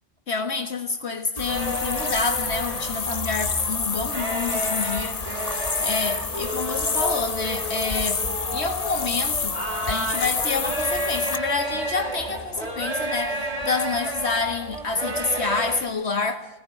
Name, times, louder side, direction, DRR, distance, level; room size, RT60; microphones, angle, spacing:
voice 1, 0.3-8.2 8.5-9.6 9.8-16.5, left 4 dB, 70° left, 1.8 m, -28 dB
sound 1, 1.4-11.4, left 4 dB, 35° left, 1.0 m, -29 dB
sound 2, 1.5-15.8, right 1 dB, 35° right, 3.2 m, -31 dB
21.0 x 18.5 x 9.1 m
omnidirectional pair, 1.1 m